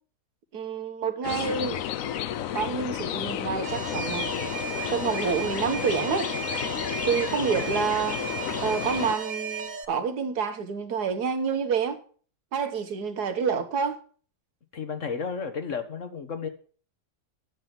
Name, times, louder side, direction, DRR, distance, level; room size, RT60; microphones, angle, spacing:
voice 1, 0.5-1.8 2.5-4.3 4.9-6.3 7.0-8.2 8.6-12.0 12.5-14.0, right 6 dB, 75° right, 1.7 m, -28 dB
sound 1, 1.2-9.1, left 10 dB, 65° left, 1.0 m, -32 dB
Alarm, 3.6-9.8, right 6 dB, 35° right, 1.1 m, -35 dB
voice 2, 14.7-16.5, left 5 dB, 50° left, 1.6 m, -32 dB
9.2 x 7.6 x 7.3 m
omnidirectional pair, 1.7 m